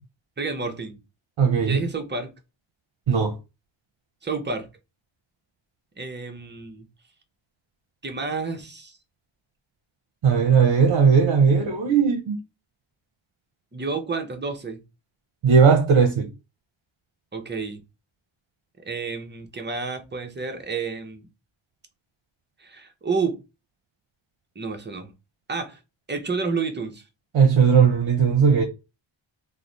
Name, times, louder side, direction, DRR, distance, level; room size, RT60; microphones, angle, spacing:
voice 1, 0.4-1.0 1.6-2.3 4.2-4.7 6.0-6.9 8.0-9.0 13.7-14.8 17.3-17.8 18.8-21.3 22.6-23.4 24.6-25.1 25.5-25.8 26.1-27.0, right 4 dB, 25° right, 0.6 m, -30 dB
voice 2, 1.4-1.8 3.1-3.3 10.2-12.4 15.4-16.3 27.3-28.6, right 6 dB, 75° right, 0.7 m, -18 dB
3.1 x 2.0 x 3.8 m
wide cardioid pair, 145°, 47 cm